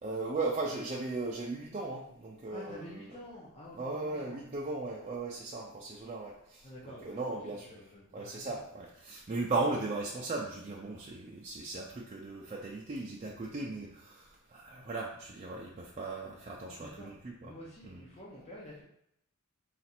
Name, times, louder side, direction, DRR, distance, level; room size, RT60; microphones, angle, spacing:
voice 1, 0.0-3.1 3.7-7.8 8.1-17.5 17.8-18.0, right 3 dB, 30° right, -3 dB, 0.4 m, -37 dB
voice 2, 2.5-4.4 6.6-8.6 16.6-17.1 17.4-18.8, left 1 dB, 30° left, -6 dB, 0.7 m, -49 dB
4.1 x 2.5 x 4.2 m, 0.76 s
head